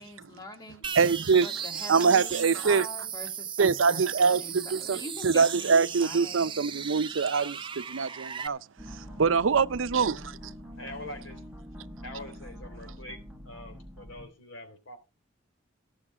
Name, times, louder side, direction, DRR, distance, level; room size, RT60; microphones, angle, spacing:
voice 1, 0.0-0.9 1.3-6.5, left 1 dB, 20° left, 2.1 m, -43 dB
sound 1, 0.8-8.5, right 8 dB, 25° right, 0.6 m, -37 dB
voice 2, 1.0-1.5 1.9-2.9 3.6-8.6 8.9-10.4, right 5 dB, 90° right, 0.6 m, -24 dB
sound 2, 8.8-14.3, equal, 5° right, 1.2 m, -44 dB
voice 3, 10.8-11.4 12.0-13.2 13.4-15.0, left 1 dB, 90° left, 3.5 m, -43 dB
16.0 x 6.5 x 4.8 m
head